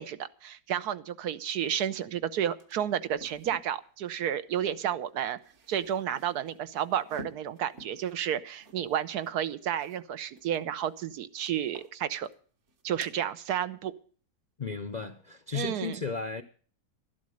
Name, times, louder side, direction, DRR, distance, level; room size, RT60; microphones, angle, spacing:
voice 1, 0.0-5.4 5.7-12.3 12.8-13.9 15.5-15.9, right 10 dB, 80° right, 1.3 m, -31 dB
sound 1, 2.0-2.1 2.4-3.7 5.1-10.0 10.3-11.1 11.4-12.4 12.7-13.1, right 1 dB, 50° right, 1.4 m, -52 dB
voice 2, 14.6-16.4, left 4 dB, 45° left, 0.5 m, -34 dB
12.5 x 11.5 x 6.4 m
omnidirectional pair, 1.7 m